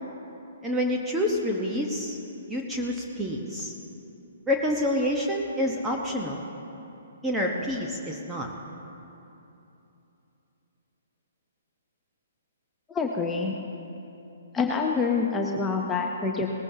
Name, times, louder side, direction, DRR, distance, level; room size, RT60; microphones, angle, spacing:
voice 1, 0.6-2.2 2.5-3.7 4.5-6.4 7.2-8.5, left 1 dB, 5° right, -2 dB, 1.1 m, -27 dB
voice 2, 12.9-13.6 14.5-16.5, left 4 dB, 15° left, 0 dB, 0.8 m, -26 dB
19.5 x 14.5 x 2.8 m, 2.9 s
figure-of-eight pair, 125°, 0 cm